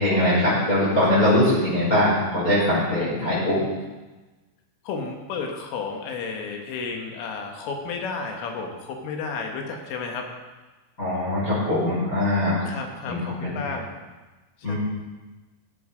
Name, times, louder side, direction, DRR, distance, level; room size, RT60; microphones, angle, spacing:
voice 1, 0.0-3.5 11.0-12.7 13.1-13.6 14.6-14.8, left 1 dB, 15° left, -9 dB, 5.1 m, -22 dB
voice 2, 3.0-3.7 4.9-10.3 12.7-13.9 14.7-14.8, left 4 dB, 80° left, 2 dB, 4.0 m, -32 dB
15.0 x 8.5 x 5.1 m, 1.2 s
omnidirectional pair, 5.7 m